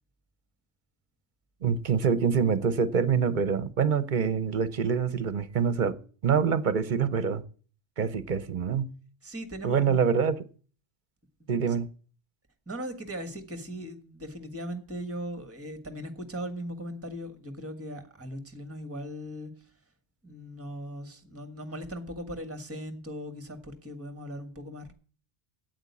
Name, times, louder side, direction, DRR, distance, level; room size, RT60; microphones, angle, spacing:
voice 1, 1.6-6.0 6.2-7.4 8.0-8.9 9.6-10.4 11.5-11.9, right 6 dB, 50° right, 0.9 m, -25 dB
voice 2, 9.2-10.0 11.4-11.7 12.7-19.7 20.2-24.9, equal, 10° right, 1.5 m, -39 dB
8.8 x 8.1 x 8.3 m
omnidirectional pair, 1.1 m